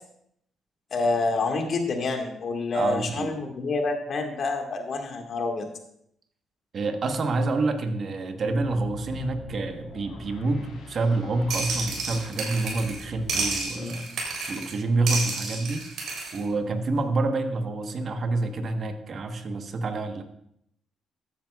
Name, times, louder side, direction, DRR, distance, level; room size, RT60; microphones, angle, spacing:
voice 1, 0.9-5.7 13.8-13.9, left 3 dB, 55° left, 3 dB, 1.7 m, -27 dB
voice 2, 2.7-3.3 6.7-14.0 14.5-15.8 16.3-20.2, right 3 dB, 50° right, 6 dB, 1.2 m, -27 dB
sound 1, 8.4-13.7, left 2 dB, 80° left, 3.0 m, -44 dB
sound 2, 11.5-13.0 13.3-14.7 15.1-16.4, right 3 dB, 75° right, 3.4 m, -30 dB
14.0 x 9.2 x 2.4 m, 0.74 s
cardioid pair, 90°, 0 cm